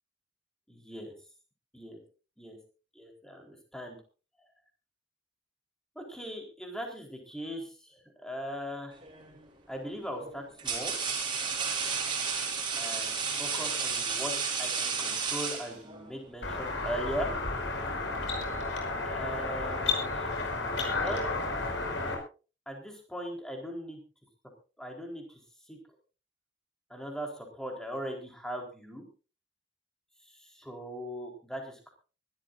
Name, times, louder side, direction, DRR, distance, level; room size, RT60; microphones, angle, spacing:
voice 1, 0.7-1.1 1.7-2.0 2.4-2.6 2.9-4.0 6.0-9.0 9.7-11.0 12.8-17.3 19.0-20.3 20.9-21.3 22.7-24.0 24.8-25.4 25.7-25.8 26.9-29.0 30.2-31.9, equal, 5° left, 2 dB, 4.0 m, -39 dB
sound 1, 9.0-9.3 10.1-16.1, right 5 dB, 25° right, 5.4 m, -32 dB
sound 2, 16.4-22.1, left 3 dB, 75° left, 5.5 m, -32 dB
24.0 x 13.0 x 2.6 m, 0.34 s
head